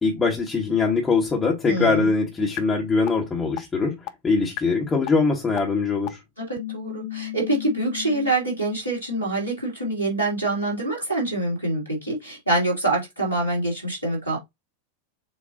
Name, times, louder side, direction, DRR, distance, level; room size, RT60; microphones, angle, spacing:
voice 1, 0.0-6.2, left 4 dB, 15° left, 1.3 m, -22 dB
voice 2, 1.6-2.1 6.4-14.4, right 2 dB, 90° left, 2.7 m, -25 dB
sound 1, 2.6-2.7 3.1-3.2 3.6-3.7 4.1-4.2 4.6-4.7 5.1-5.2 5.6-5.7 6.1-6.2 6.6-8.3, left 16 dB, 45° left, 0.5 m, -32 dB
6.7 x 2.6 x 2.7 m
figure-of-eight pair, 90°, 0 cm